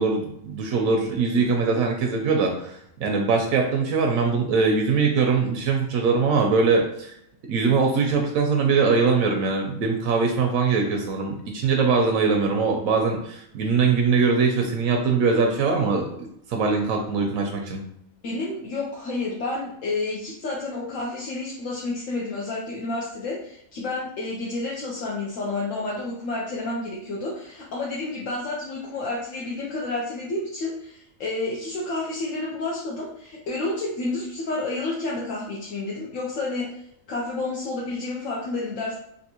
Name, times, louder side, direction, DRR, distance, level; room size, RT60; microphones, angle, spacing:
voice 1, 0.0-7.1 7.5-16.1 16.5-17.8, right 4 dB, 80° right, 2 dB, 1.0 m, -22 dB
voice 2, 18.2-36.8 37.1-39.0, left 2 dB, 75° left, -4 dB, 1.0 m, -30 dB
3.4 x 2.6 x 2.8 m, 0.73 s
omnidirectional pair, 1.4 m